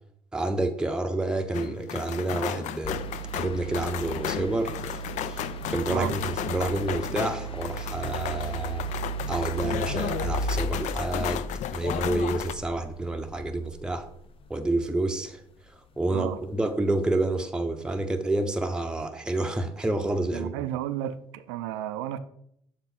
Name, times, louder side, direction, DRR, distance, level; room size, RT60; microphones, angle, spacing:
voice 1, 0.3-3.0 3.3-8.8 9.3-11.4 11.7-14.1 14.5-15.4 15.7-20.5, right 2 dB, 5° right, 0.7 m, -29 dB
sound 1, 1.5-12.5, left 11 dB, 60° left, 0.4 m, -34 dB
sound 2, 2.8-15.1 16.4-16.5, right 3 dB, 40° left, 0.8 m, -35 dB
voice 2, 20.3-22.2, right 12 dB, 80° right, 0.4 m, -32 dB
7.0 x 3.7 x 4.2 m
hypercardioid pair, 55°, 14 cm